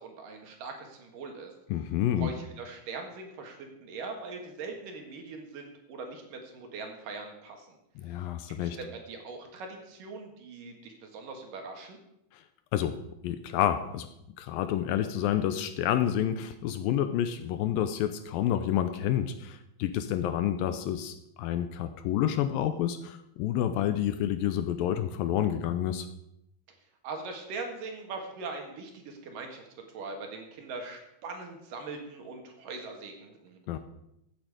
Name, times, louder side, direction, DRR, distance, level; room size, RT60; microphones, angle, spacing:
voice 1, 0.0-1.5 2.2-7.7 8.6-12.0 27.0-29.6 29.9-33.6, right 3 dB, 65° right, 3 dB, 3.2 m, -41 dB
voice 2, 1.7-2.3 8.0-8.8 12.3-12.4 12.7-13.0 13.2-14.1 14.4-26.1 33.7-33.8, left 11 dB, 80° left, 10 dB, 2.2 m, -29 dB
15.0 x 9.1 x 4.9 m, 0.81 s
omnidirectional pair, 4.4 m